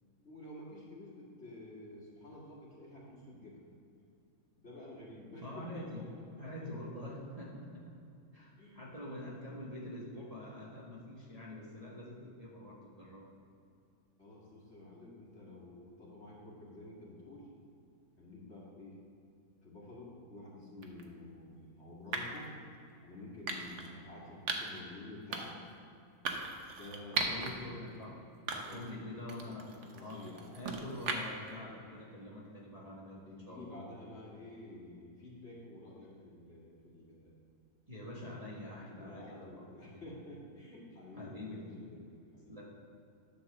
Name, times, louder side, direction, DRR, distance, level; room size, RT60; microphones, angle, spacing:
voice 1, 0.2-3.7 4.6-6.1 8.6-9.0 14.2-17.5 18.2-19.0 19.6-22.5 23.0-25.6 26.8-28.0 28.7-29.0 29.4-29.6 29.9-30.5 33.3-37.3 38.8-42.6, left 1 dB, 45° left, -5 dB, 2.3 m, -50 dB
voice 2, 5.4-6.0 6.4-7.9 8.3-13.2 27.1-30.2 30.5-33.8 37.9-39.5 39.9-40.1 41.2-41.6 42.5-42.6, left 1 dB, 25° right, -7 dB, 1.4 m, -45 dB
sound 1, 20.8-21.1 22.1-22.5 23.5-23.9 24.5-24.8 25.3-25.7 26.3-27.5 27.9-28.0 28.5-28.9 29.3-31.5, right 4 dB, 55° right, 1.1 m, -38 dB
10.5 x 4.1 x 6.7 m, 2.6 s
omnidirectional pair, 1.6 m